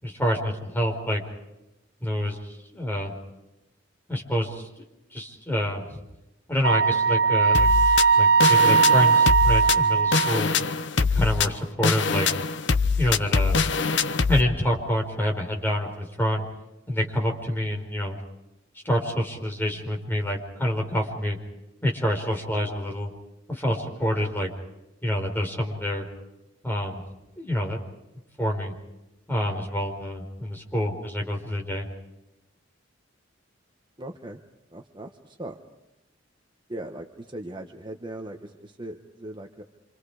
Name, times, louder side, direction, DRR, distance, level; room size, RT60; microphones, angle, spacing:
voice 1, 0.0-1.2 2.0-3.1 4.1-5.9 6.5-7.7 8.2-10.5 11.0-12.3 13.0-13.6 14.3-16.4 16.9-18.2 18.8-21.4 21.8-23.1 23.5-24.5 25.0-26.1 26.6-27.0 27.4-27.8 28.4-28.7 29.3-31.9, equal, 10° left, 0 dB, 4.8 m, -27 dB
Wind instrument woodwind instrument, 6.6-10.5, right 5 dB, 75° right, 0.7 m, -19 dB
sound 1, 7.5-14.4, left 5 dB, 65° left, 0.9 m, -24 dB
voice 2, 34.0-34.4 34.7-35.6 36.7-39.6, right 1 dB, 25° right, 4 dB, 1.3 m, -39 dB
27.5 x 27.5 x 5.0 m, 0.93 s
head